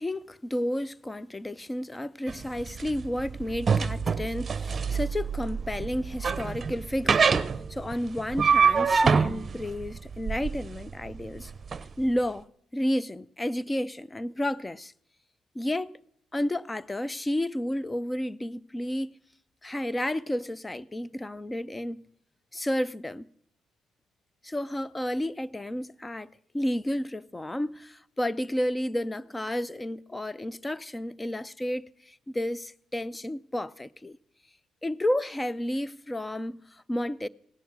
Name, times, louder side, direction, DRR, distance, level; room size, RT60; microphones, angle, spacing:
voice 1, 0.0-7.2 7.7-11.5 12.0-12.4 12.7-14.9 15.5-16.0 16.3-19.1 19.6-22.0 22.5-23.3 24.4-34.2 34.8-36.6 36.9-37.3, left 1 dB, 20° left, 0.5 m, -31 dB
sound 1, 2.3-11.8, right 5 dB, 40° right, 0.7 m, -26 dB
17.0 x 10.5 x 6.3 m
supercardioid pair, 65°, 0 cm